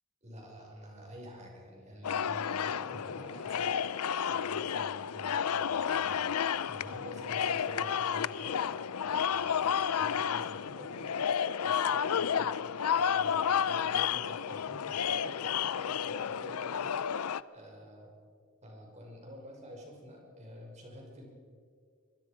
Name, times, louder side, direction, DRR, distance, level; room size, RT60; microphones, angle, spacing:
voice 1, 0.2-6.2 6.6-8.7 9.0-11.2 11.6-12.6 12.9-18.1 18.6-21.3, equal, 30° right, 0 dB, 5.8 m, -49 dB
sound 1, 2.0-17.4, left 8 dB, 85° left, 0.5 m, -31 dB
23.5 x 23.5 x 5.2 m, 2.2 s
head